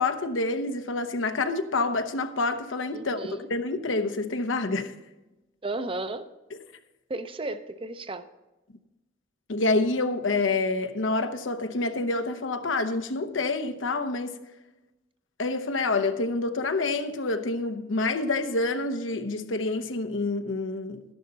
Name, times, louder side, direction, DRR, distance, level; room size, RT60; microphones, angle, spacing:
voice 1, 0.0-4.9 9.5-14.4 15.4-21.0, left 3 dB, 85° left, 0.9 m, -27 dB
voice 2, 2.9-3.5 5.6-6.3 7.1-8.3, right 2 dB, 30° right, 0.6 m, -34 dB
12.0 x 11.0 x 4.0 m
head